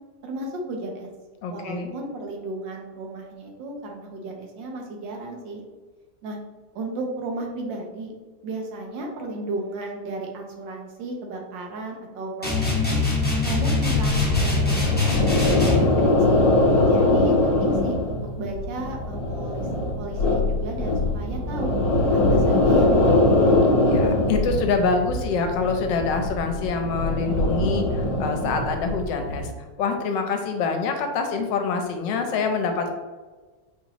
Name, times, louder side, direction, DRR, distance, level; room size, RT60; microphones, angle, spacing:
voice 1, 0.2-1.1 1.5-5.6 6.2-6.4 6.7-8.1 8.4-13.0 13.4-16.5 16.8-19.7 20.0-21.7 22.1-23.5, right 2 dB, 85° right, 1 dB, 1.4 m, -34 dB
voice 2, 1.4-1.9 23.9-29.5 29.8-32.9, left 4 dB, 85° left, 4 dB, 1.3 m, -25 dB
sound 1, 12.4-15.9, left 3 dB, 10° left, 0.4 m, -23 dB
sound 2, 13.6-29.4, left 2 dB, 55° left, 1.1 m, -22 dB
4.6 x 2.9 x 2.6 m, 1.3 s
omnidirectional pair, 2.0 m